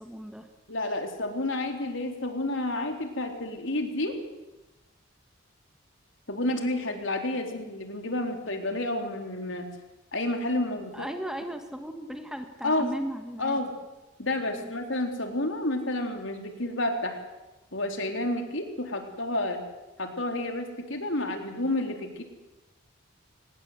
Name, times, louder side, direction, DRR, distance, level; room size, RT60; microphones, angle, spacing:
voice 1, 0.0-0.5 10.9-13.6 14.5-14.7, equal, 5° right, 6 dB, 1.5 m, -36 dB
voice 2, 0.7-4.2 6.3-9.7 10.1-11.1 12.6-12.9 13.4-13.7 14.2-17.2 17.7-19.6 20.0-22.2, left 1 dB, 65° left, 5 dB, 3.8 m, -30 dB
25.5 x 20.5 x 8.1 m, 1.0 s
head